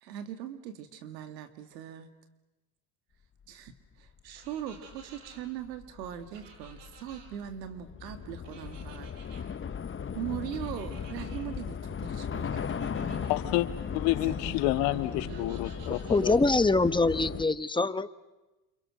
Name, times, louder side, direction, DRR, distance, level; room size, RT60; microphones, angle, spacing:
voice 1, 0.0-2.1 3.5-3.7 4.0-9.1 10.1-13.3 14.3-15.7, right 9 dB, 85° right, 8 dB, 2.5 m, -40 dB
Train / Subway metro underground, 4.1-4.2 4.5-17.5, left 7 dB, 25° left, 1.0 m, -37 dB
sound 1, 4.3-5.4 6.3-7.3 8.4-9.4 10.5-11.5 12.5-13.4 15.2-16.4, right 5 dB, 60° right, 6.7 m, -54 dB
voice 2, 13.3-13.7 13.9-16.5, left 17 dB, 75° left, 11 dB, 1.8 m, -29 dB
voice 3, 16.1-18.1, left 3 dB, 10° left, 13 dB, 1.3 m, -24 dB
30.0 x 28.0 x 6.4 m, 1.1 s
hypercardioid pair, 65°, 49 cm